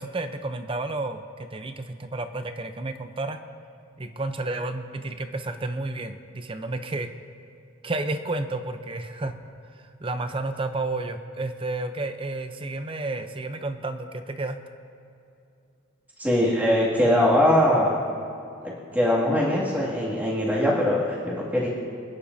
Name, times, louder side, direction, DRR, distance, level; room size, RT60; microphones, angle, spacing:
voice 1, 0.0-3.4 4.0-7.1 7.8-9.4 10.0-14.6, right 2 dB, 25° right, 8 dB, 0.7 m, -31 dB
voice 2, 16.2-18.0 18.6-21.7, left 1 dB, 10° right, -7 dB, 2.3 m, -22 dB
27.0 x 10.0 x 2.7 m, 2.6 s
head